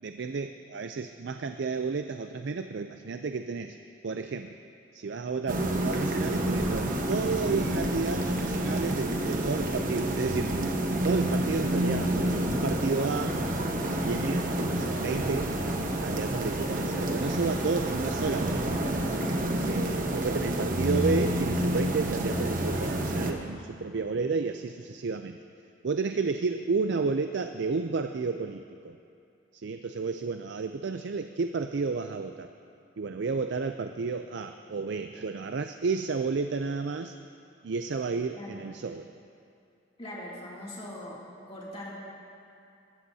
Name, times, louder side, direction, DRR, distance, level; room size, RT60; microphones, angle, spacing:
voice 1, 0.0-3.8 4.0-4.6 4.9-10.5 11.0-13.4 14.0-15.5 16.0-18.8 19.6-25.4 25.8-29.0 29.5-32.5 33.0-37.1 37.6-39.1, right 4 dB, 65° right, 7 dB, 0.4 m, -31 dB
sound 1, 5.5-23.3, right 1 dB, 45° right, 1.1 m, -29 dB
voice 2, 40.0-41.2 41.5-41.9, left 1 dB, 30° left, -6 dB, 2.6 m, -41 dB
20.5 x 15.0 x 2.8 m, 2.6 s
head